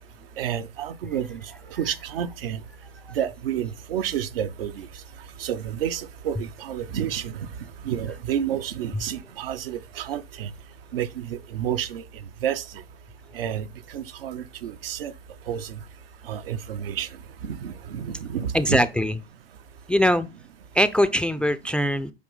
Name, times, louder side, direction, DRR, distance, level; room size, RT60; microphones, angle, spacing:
voice 1, 0.4-1.4 1.8-2.6 3.2-4.9 5.4-7.3 7.8-10.5 10.9-12.0 12.4-12.6 13.3-13.6 13.9-15.1 15.5-15.7 16.3-17.1 17.4-18.8, right 9 dB, 70° right, 0.8 m, -29 dB
voice 2, 18.5-19.2 19.9-20.3 20.7-22.1, equal, 5° left, 0.4 m, -21 dB
8.0 x 3.1 x 5.4 m
figure-of-eight pair, 85°, 30 cm